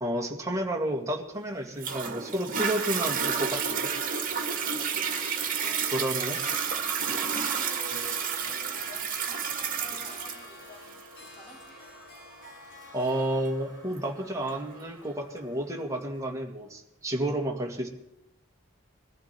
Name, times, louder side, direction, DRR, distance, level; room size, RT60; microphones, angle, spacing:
voice 1, 0.0-3.9 5.9-6.4 12.9-17.9, right 1 dB, 15° right, 2 dB, 2.1 m, -31 dB
Toilet flush, 1.8-14.8 15.4-15.5, right 6 dB, 40° right, 2.1 m, -31 dB
Harp, 3.8-15.6, left 2 dB, 60° left, 5.9 m, -49 dB
voice 2, 5.6-6.1 7.0-11.6, equal, 10° left, -5 dB, 5.1 m, -49 dB
21.5 x 14.5 x 4.6 m, 0.84 s
head